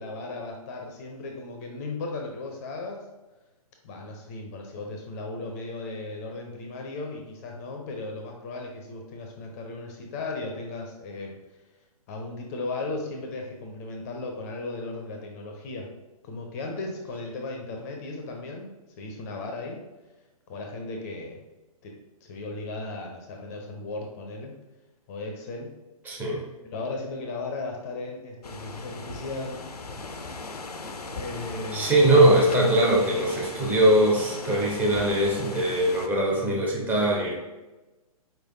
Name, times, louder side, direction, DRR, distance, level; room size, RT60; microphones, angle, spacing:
voice 1, 0.0-3.1 3.8-11.4 12.1-15.9 16.2-19.8 20.5-21.4 21.8-24.5 25.1-25.7 26.7-30.0 31.1-31.9, left 3 dB, 25° left, 2 dB, 0.5 m, -36 dB
voice 2, 26.0-26.4 31.7-37.3, right 1 dB, 10° right, -3 dB, 0.8 m, -21 dB
sound 1, 28.4-36.1, left 3 dB, 85° left, 0.5 m, -38 dB
4.5 x 3.3 x 2.6 m, 1.1 s
figure-of-eight pair, 125°, 19 cm